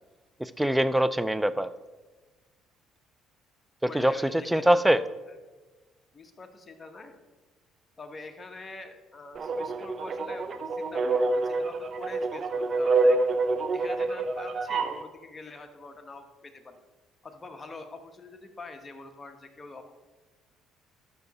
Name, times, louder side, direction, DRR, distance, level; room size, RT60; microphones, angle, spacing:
voice 1, 0.4-1.7 3.8-5.0, right 1 dB, 5° right, 15 dB, 0.5 m, -23 dB
voice 2, 3.9-5.1 6.1-7.2 8.0-13.2 13.7-16.8 17.2-19.9, left 3 dB, 25° left, 5 dB, 1.2 m, -45 dB
sound 1, 9.4-15.0, right 3 dB, 45° right, 0.8 m, -27 dB
12.5 x 5.8 x 4.2 m, 1.2 s
supercardioid pair, 80°, 0 cm